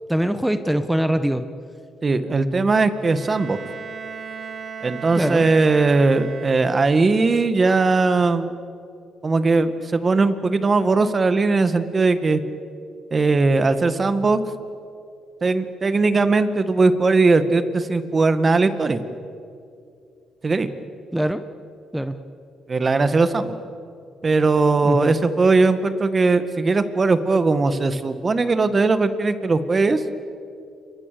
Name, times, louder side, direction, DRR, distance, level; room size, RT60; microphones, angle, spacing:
voice 1, 0.1-1.4 5.2-5.5 21.1-21.4 21.9-22.2 24.8-25.1, right 1 dB, 5° right, 10 dB, 1.2 m, -22 dB
voice 2, 2.0-3.6 4.8-8.5 9.2-12.4 13.1-14.4 15.4-19.0 20.4-20.7 22.7-23.5 24.2-30.0, right 3 dB, 35° right, 10 dB, 1.9 m, -19 dB
Bowed string instrument, 3.1-7.0, right 6 dB, 50° right, 1.4 m, -36 dB
28.5 x 24.5 x 7.0 m, 2.5 s
cardioid pair, 90°, 0 cm